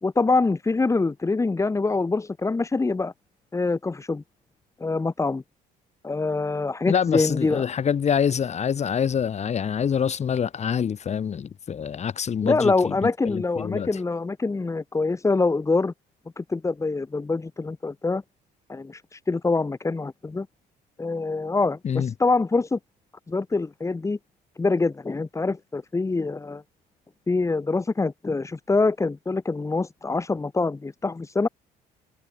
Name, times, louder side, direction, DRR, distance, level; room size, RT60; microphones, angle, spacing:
voice 1, 0.0-3.1 3.5-4.2 4.8-5.4 6.0-7.6 12.4-15.9 16.4-18.2 18.7-20.5 21.0-22.8 23.3-24.2 24.6-26.6 27.3-31.5, left 3 dB, 15° left, 1.9 m, -25 dB
voice 2, 6.8-13.9 21.8-22.1, left 7 dB, 40° left, 3.3 m, -26 dB
cardioid pair, 110°, 17 cm